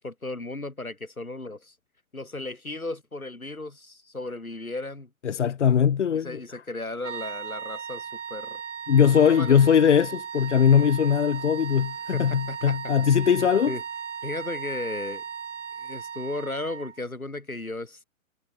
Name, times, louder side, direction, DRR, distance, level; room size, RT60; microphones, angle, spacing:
voice 1, 0.0-1.8 2.1-5.1 6.1-8.6 9.1-9.6 12.1-12.9 13.7-13.8 14.2-15.2 15.8-18.0, left 2 dB, 85° left, 3.9 m, -35 dB
voice 2, 5.2-6.3 8.9-13.7, left 8 dB, 55° left, 1.2 m, -20 dB
sound 1, 7.0-17.0, right 7 dB, 60° right, 1.9 m, -37 dB
figure-of-eight pair, 125°, 41 cm